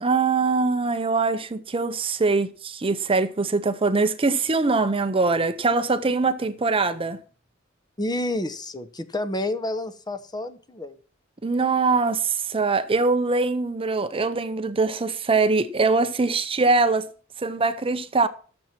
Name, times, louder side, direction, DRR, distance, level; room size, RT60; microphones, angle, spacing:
voice 1, 0.0-7.2 11.4-17.0 17.4-18.3, right 3 dB, 25° right, 0.6 m, -22 dB
voice 2, 8.0-11.0, left 1 dB, 20° left, 0.9 m, -29 dB
12.5 x 7.2 x 5.9 m
head